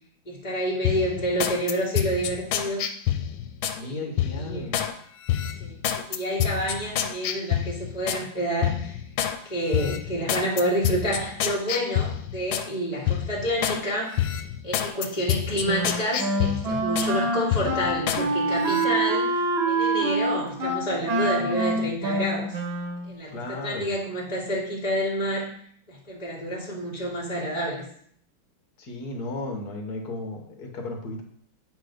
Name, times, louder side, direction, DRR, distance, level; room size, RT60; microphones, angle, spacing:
voice 1, 0.3-2.9 3.8-4.7 5.6-9.0 9.4-14.2 14.6-19.4 19.7-22.6 23.1-25.5 25.9-27.8, equal, 20° left, -4 dB, 2.1 m, -29 dB
sound 1, 0.8-3.8 4.2-4.9 5.3-8.2 8.6-9.4 9.7-12.7 13.1-13.8 14.2-17.1 17.5-18.2 18.6-18.9, left 11 dB, 90° left, 1.4 m, -28 dB
voice 2, 3.7-4.8 23.3-23.9 28.8-31.2, left 2 dB, 55° left, 2 dB, 1.8 m, -34 dB
Wind instrument woodwind instrument, 15.6-23.1, right 2 dB, 80° right, 2.0 m, -26 dB
9.0 x 3.5 x 5.2 m, 0.63 s
omnidirectional pair, 2.2 m